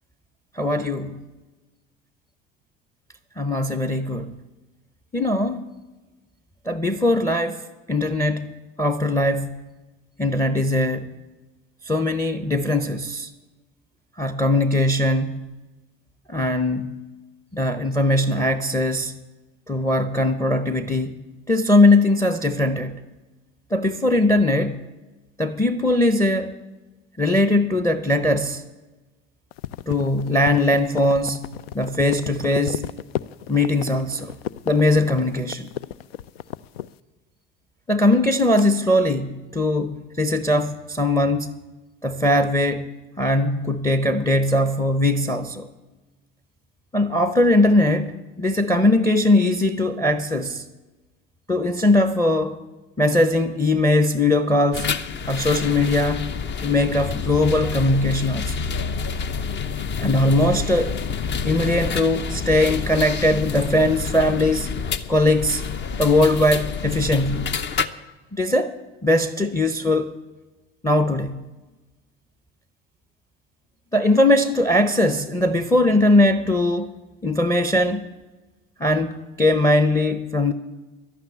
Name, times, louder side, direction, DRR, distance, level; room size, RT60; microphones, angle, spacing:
voice 1, 0.5-1.2 3.4-4.4 5.1-5.7 6.7-7.6 7.9-8.5 8.8-9.6 10.2-11.1 11.8-13.3 14.2-15.5 16.3-17.0 17.5-19.1 19.7-21.1 21.5-23.0 23.7-24.8 25.4-26.6 27.2-28.6 29.9-31.5 31.7-32.8 33.5-34.3 34.7-35.7 37.9-41.5 42.0-42.9 43.2-45.7 46.9-50.6 51.5-52.6 53.0-54.9 55.3-56.3 56.6-58.6 60.0-61.0 61.4-64.7 65.1-65.6 66.0-67.6 68.3-68.7 69.0-70.1 70.8-71.4 73.9-77.0 77.2-78.1 78.8-80.5, left 1 dB, 10° left, 0.7 m, -20 dB
sound 1, 29.5-36.9, left 12 dB, 75° left, 0.5 m, -33 dB
sound 2, 54.7-67.9, left 6 dB, 35° left, 0.8 m, -28 dB
11.5 x 9.3 x 9.2 m
hypercardioid pair, 70°, 30 cm